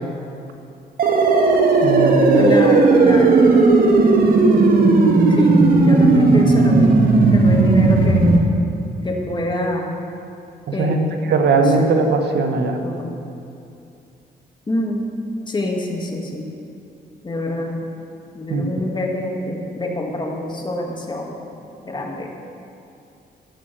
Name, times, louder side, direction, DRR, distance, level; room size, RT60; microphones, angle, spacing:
sound 1, 1.0-8.4, right 3 dB, 60° right, 1.3 m, -14 dB
voice 1, 1.8-2.5 7.5-8.0 10.7-12.8 18.5-18.6, right 3 dB, 85° right, 5 dB, 1.0 m, -19 dB
voice 2, 2.3-3.5 4.5-5.0 5.3-8.3 9.0-10.0 10.7-11.2 11.5-11.9 12.8-13.1 14.7-15.1 15.5-16.5 17.2-17.9 18.3-21.4 21.8-22.3, left 1 dB, 25° left, 0 dB, 1.6 m, -26 dB
12.5 x 6.3 x 7.4 m, 2.6 s
cardioid pair, 115°, 17 cm